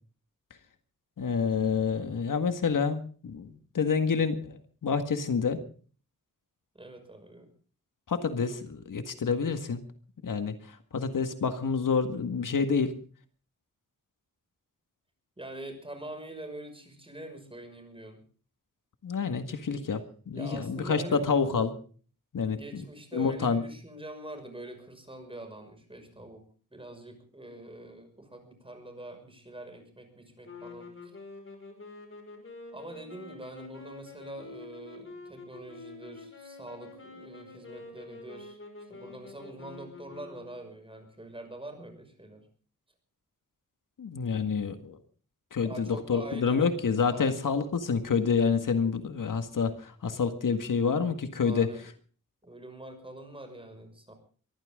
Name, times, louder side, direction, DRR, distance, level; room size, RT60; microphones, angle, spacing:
voice 1, 1.2-5.6 8.1-9.8 10.2-12.9 19.0-21.7 22.3-22.8 23.1-23.6 44.0-45.0 45.5-51.7, left 5 dB, 70° left, 8 dB, 1.9 m, -28 dB
voice 2, 6.7-7.5 15.4-18.2 20.3-21.3 22.5-26.4 26.7-30.9 32.7-38.6 38.9-42.5 45.6-46.8 47.1-47.5 51.4-51.8 52.4-54.1, right 1 dB, 15° right, 6 dB, 6.0 m, -44 dB
sound 1, 30.4-40.8, left 3 dB, 40° left, 5.6 m, -47 dB
23.5 x 15.0 x 3.8 m, 0.42 s
wide cardioid pair, 105°, 33 cm